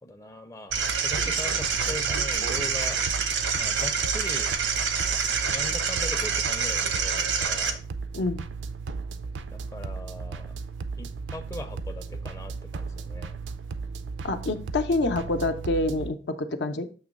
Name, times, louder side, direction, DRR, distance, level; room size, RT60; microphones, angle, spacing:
voice 1, 0.0-3.0 3.5-4.5 5.5-7.8 9.5-10.5 11.0-13.4, left 1 dB, 15° left, 4 dB, 0.5 m, -40 dB
sound 1, 0.7-16.1, right 4 dB, 70° right, 0.4 m, -36 dB
sound 2, 0.7-7.7, right 6 dB, 85° right, 0.9 m, -27 dB
voice 2, 8.1-8.4 14.2-16.9, left 2 dB, 65° left, 7 dB, 0.6 m, -27 dB
7.1 x 3.0 x 5.1 m, 0.38 s
head